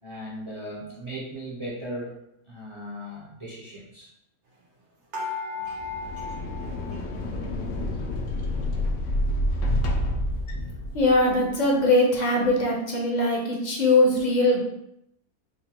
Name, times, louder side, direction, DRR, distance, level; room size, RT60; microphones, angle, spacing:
voice 1, 0.0-2.2 2.5-4.1, equal, 30° right, -5 dB, 0.6 m, -37 dB
sound 1, 5.1-7.7 8.0-8.9 9.5-9.6 9.8-9.9, left 3 dB, 55° right, 1.1 m, -37 dB
sound 2, 5.8-11.4, left 1 dB, 70° left, 0.8 m, -28 dB
voice 2, 10.9-14.6, left 2 dB, 40° left, -1 dB, 0.7 m, -21 dB
5.0 x 2.2 x 2.9 m, 0.78 s
omnidirectional pair, 1.5 m